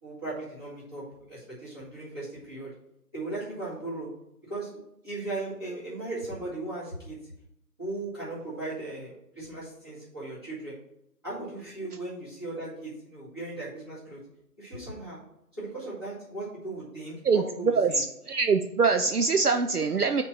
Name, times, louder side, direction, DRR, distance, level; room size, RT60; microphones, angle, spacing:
voice 1, 0.0-2.7 3.1-4.1 4.4-4.7 5.0-7.2 7.8-10.8 11.2-14.2 14.6-15.2 15.6-18.0, right 2 dB, 15° right, -12 dB, 2.1 m, -37 dB
voice 2, 17.8-20.2, right 4 dB, 65° right, 7 dB, 0.6 m, -24 dB
6.3 x 4.5 x 5.8 m, 0.80 s
figure-of-eight pair, 170°, 49 cm